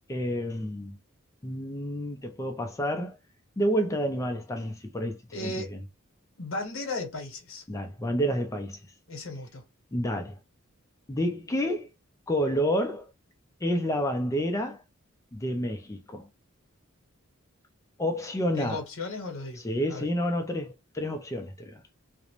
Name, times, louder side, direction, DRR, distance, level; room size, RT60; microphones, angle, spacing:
voice 1, 0.1-1.0 1.4-3.2 3.6-5.8 7.7-8.8 9.9-10.4 11.1-11.9 12.3-13.1 13.6-14.8 15.3-16.3 18.0-18.8 19.6-21.8, equal, 15° left, 0.3 m, -29 dB
voice 2, 5.3-5.7 6.4-7.6 9.1-9.6 18.6-19.6 19.9-20.1, left 2 dB, 70° left, 0.9 m, -35 dB
2.5 x 2.0 x 2.9 m
head